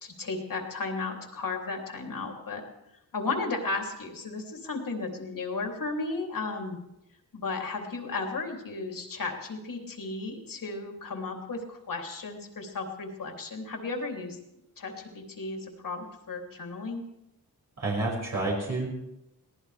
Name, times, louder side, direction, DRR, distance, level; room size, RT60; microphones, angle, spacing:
voice 1, 0.0-2.6 3.1-6.8 7.3-14.4 14.8-17.0, left 3 dB, 60° left, 1 dB, 3.1 m, -34 dB
voice 2, 17.8-19.0, right 2 dB, 45° right, -4 dB, 5.8 m, -29 dB
22.5 x 18.0 x 3.4 m, 0.85 s
wide cardioid pair, 155°, 38 cm